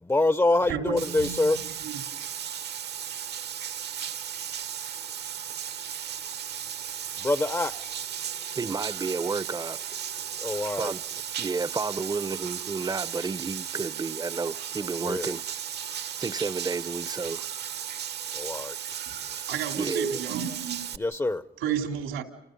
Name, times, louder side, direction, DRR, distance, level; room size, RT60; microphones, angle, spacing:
voice 1, 0.0-1.6 7.2-7.7 10.4-10.9 15.0-15.3 18.3-18.8 21.0-21.4, left 2 dB, 15° left, 0.8 m, -25 dB
voice 2, 0.7-1.9 19.1-19.2 19.5-20.8 21.6-22.2, right 8 dB, 80° right, 3.6 m, -32 dB
Bathtub (filling or washing), 1.0-21.0, right 9 dB, 55° right, 1.2 m, -35 dB
voice 3, 8.5-9.8 10.8-11.0 11.4-15.4 15.9-17.5 19.8-20.2, right 4 dB, 20° right, 0.8 m, -31 dB
29.5 x 28.5 x 5.4 m
cardioid pair, 90°, 21 cm